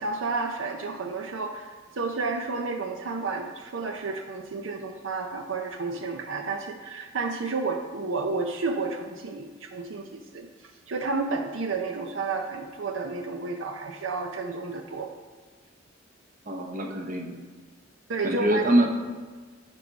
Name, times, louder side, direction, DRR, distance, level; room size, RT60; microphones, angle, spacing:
voice 1, 0.0-10.5 10.9-15.1 18.1-18.7, right 3 dB, 80° right, 4 dB, 0.6 m, -31 dB
voice 2, 16.5-17.4 18.2-18.9, right 1 dB, 45° right, 3 dB, 0.9 m, -24 dB
9.9 x 4.7 x 4.0 m, 1.4 s
head